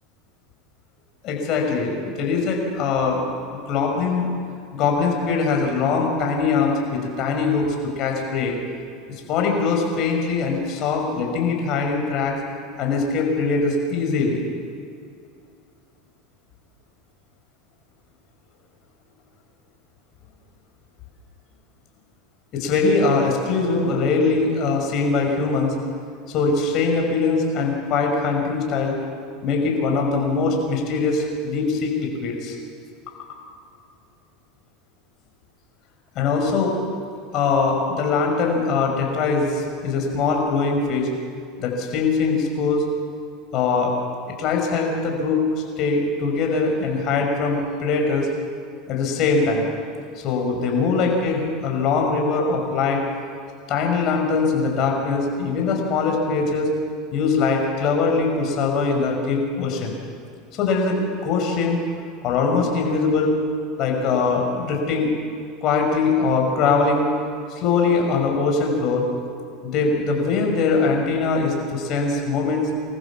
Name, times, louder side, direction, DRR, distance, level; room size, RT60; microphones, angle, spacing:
voice 1, 1.2-4.3 4.7-8.6 9.3-12.3 12.8-14.4 22.5-25.7 26.3-29.0 29.4-32.5 36.1-36.7 37.3-41.1 41.6-42.8 43.5-43.9 44.4-45.4 45.8-48.3 48.9-49.7 50.2-53.0 53.7-56.7 57.1-60.0 60.5-61.8 62.2-63.4 63.8-65.1 65.6-67.1 67.6-69.0 69.6-72.7, left 4 dB, 50° left, 2 dB, 6.0 m, -22 dB
26.0 x 14.5 x 7.4 m, 2.4 s
supercardioid pair, 105°, 0 cm